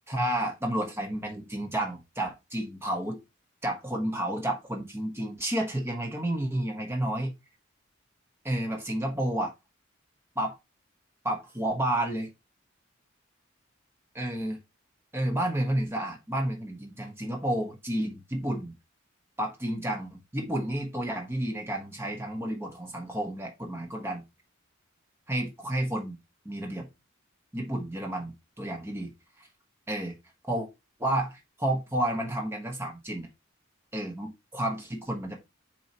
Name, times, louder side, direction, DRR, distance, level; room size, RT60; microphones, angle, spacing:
voice 1, 0.1-3.2 3.6-7.3 8.4-9.5 10.4-10.6 11.2-12.3 14.1-14.6 15.1-18.7 19.4-24.2 25.3-26.2 26.4-26.9 27.5-29.1 29.4-29.5 29.9-30.2 30.5-30.7 31.0-33.3 33.9-35.4, right 1 dB, 10° right, 1.1 m, -31 dB
7.4 x 4.7 x 2.9 m
head